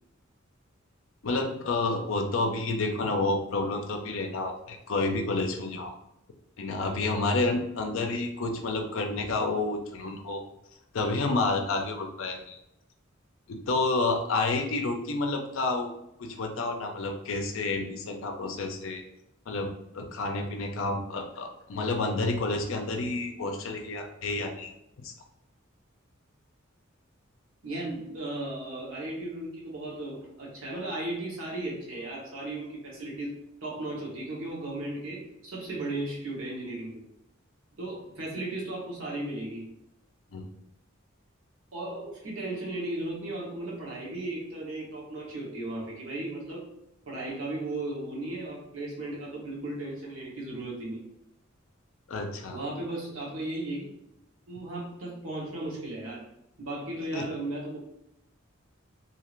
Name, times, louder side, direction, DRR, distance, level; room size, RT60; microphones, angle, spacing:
voice 1, 1.2-5.9 6.6-10.4 10.9-12.6 13.5-19.0 19.5-24.7 25.0-25.1 40.3-40.5 52.1-52.6 57.1-57.3, left 3 dB, 70° left, 4 dB, 0.5 m, -30 dB
voice 2, 27.6-37.0 37.8-39.7 41.7-46.7 47.0-51.1 52.5-53.9 54.5-56.2 56.6-57.8, right 2 dB, 75° right, -4 dB, 1.1 m, -36 dB
2.8 x 2.4 x 3.0 m, 0.82 s
head